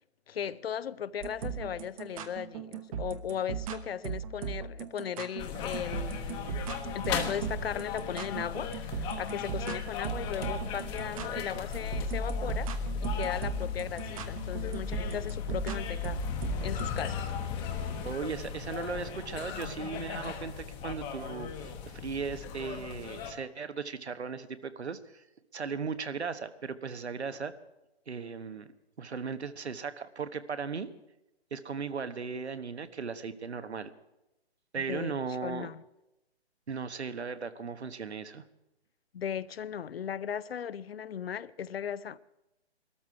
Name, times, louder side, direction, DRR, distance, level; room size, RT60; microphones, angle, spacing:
voice 1, 0.3-6.6 6.9-12.8 13.0-16.2 16.6-17.3 34.8-35.1 35.4-35.8 39.1-42.2, left 8 dB, 65° left, 0.7 m, -37 dB
sound 1, 1.2-17.0, right 8 dB, 35° right, 1.1 m, -37 dB
sound 2, 5.4-23.3, left 6 dB, 15° left, 1.0 m, -36 dB
voice 2, 18.0-25.2 25.5-27.5 28.1-28.7 29.0-30.9 31.5-33.9 34.7-35.7 36.7-38.4, right 5 dB, 85° right, 1.3 m, -37 dB
20.0 x 13.5 x 4.8 m
hypercardioid pair, 145°, 32 cm